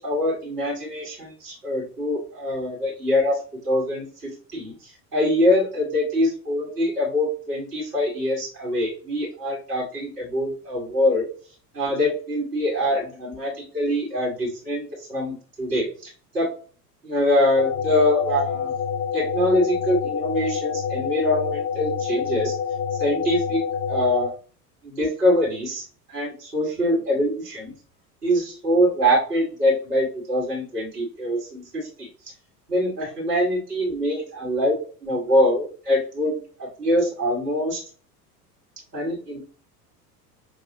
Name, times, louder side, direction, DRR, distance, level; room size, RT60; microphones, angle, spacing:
voice 1, 0.0-3.4 3.6-4.7 5.1-11.3 11.7-15.9 16.3-16.5 17.0-18.7 19.1-22.5 23.0-23.6 23.9-24.3 24.8-25.8 26.1-27.7 28.2-32.1 32.7-34.7 35.0-37.8 38.9-39.4, left 1 dB, 85° right, -5 dB, 1.5 m, -24 dB
sound 1, 17.6-24.3, left 7 dB, 80° left, 0.7 m, -27 dB
6.3 x 2.4 x 2.6 m, 0.40 s
figure-of-eight pair, 70°, 47 cm